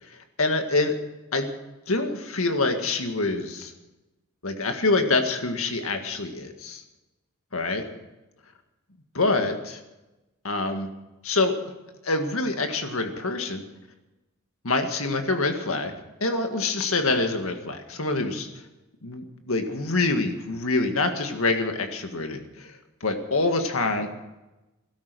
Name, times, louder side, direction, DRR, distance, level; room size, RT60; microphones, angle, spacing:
voice 1, 0.4-1.0 1.3-1.5 1.9-3.7 4.4-6.8 7.5-7.9 9.2-9.8 10.4-10.9 11.2-11.6 12.0-13.6 14.6-15.9 16.2-18.5 19.0-24.1, left 3 dB, 80° left, 6 dB, 1.9 m, -26 dB
16.5 x 12.5 x 6.2 m, 1.0 s
head